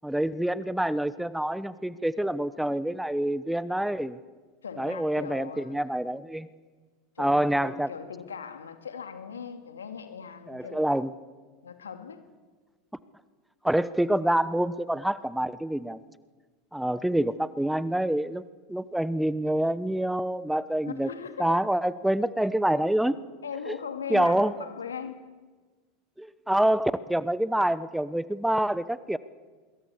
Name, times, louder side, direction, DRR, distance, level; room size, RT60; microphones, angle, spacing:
voice 1, 0.0-4.2 4.8-6.5 7.2-7.9 10.5-11.1 13.6-16.0 16.7-18.4 18.7-21.1 21.4-23.2 23.7-23.8 24.1-24.7 26.2-29.2, right 1 dB, 5° right, 0.9 m, -26 dB
voice 2, 4.6-5.8 7.2-10.9 11.6-12.2 20.8-21.6 23.4-25.3, left 7 dB, 90° left, 2.4 m, -39 dB
24.5 x 22.0 x 7.2 m
hypercardioid pair, 90°, 0 cm